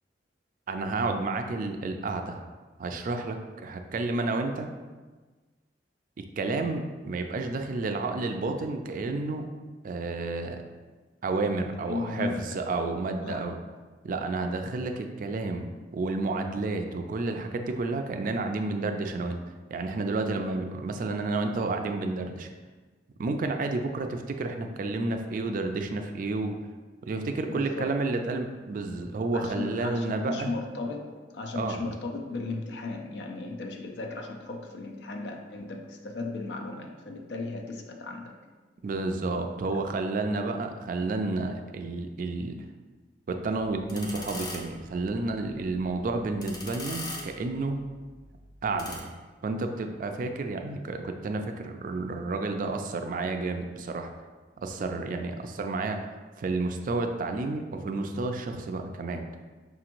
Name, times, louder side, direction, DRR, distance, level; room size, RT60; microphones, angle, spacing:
voice 1, 0.7-2.5 2.8-4.7 6.4-9.5 9.8-10.6 11.2-13.5 14.0-15.6 15.9-19.4 19.7-22.5 23.2-26.6 27.0-30.5 31.6-31.8 38.8-42.6 43.3-47.8 48.6-49.1 49.4-54.1 54.6-56.0 56.4-59.2, right 3 dB, 50° right, 5 dB, 0.3 m, -30 dB
voice 2, 11.8-12.6 13.2-13.5 27.5-27.9 29.3-38.4 39.6-39.8, left 3 dB, 70° left, 3 dB, 0.5 m, -36 dB
sound 1, 43.7-49.0, left 2 dB, 20° left, 0.5 m, -42 dB
5.5 x 2.9 x 2.5 m, 1.3 s
head